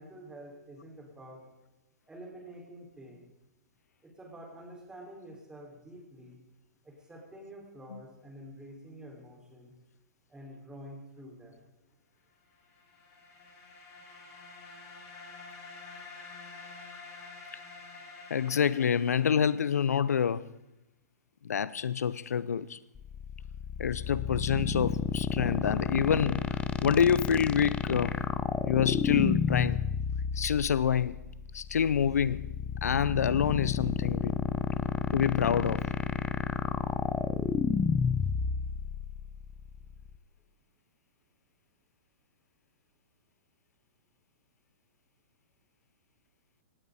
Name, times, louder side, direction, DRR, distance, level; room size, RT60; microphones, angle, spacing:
voice 1, 0.0-1.5 2.1-3.3 4.0-6.4 6.8-9.7 10.3-11.6, right 1 dB, 10° right, 5.2 m, -48 dB
sound 1, 12.6-20.3, left 3 dB, 35° left, 6.0 m, -49 dB
voice 2, 18.3-20.5 21.4-22.8 23.8-28.1 28.6-29.8 30.3-31.2 31.5-32.5 32.8-34.3 35.1-35.9, left 7 dB, 85° left, 0.6 m, -27 dB
sound 2, 23.0-40.2, left 6 dB, 15° left, 0.7 m, -31 dB
18.5 x 16.0 x 4.3 m
hypercardioid pair, 130°, 8 cm